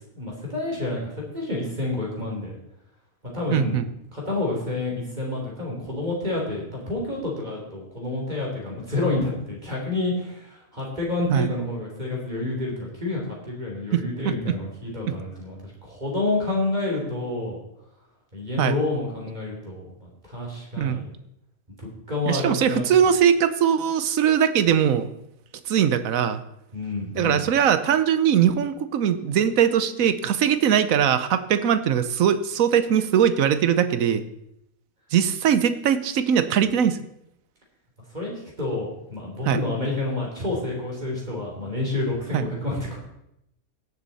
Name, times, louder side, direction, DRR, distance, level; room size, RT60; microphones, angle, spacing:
voice 1, 0.1-2.5 3.3-3.8 4.1-17.6 18.3-21.1 21.8-22.8 26.7-27.4 38.1-38.3 38.6-43.0, left 2 dB, 30° right, -2 dB, 3.4 m, -29 dB
voice 2, 3.5-3.9 11.3-11.5 13.9-14.5 15.1-15.2 18.6-18.8 20.8-21.1 22.3-25.1 25.7-26.4 27.1-34.2 35.1-37.0 39.4-39.6 42.3-42.4, right 8 dB, 70° right, 12 dB, 1.2 m, -21 dB
17.0 x 7.2 x 4.1 m, 0.80 s
omnidirectional pair, 1.5 m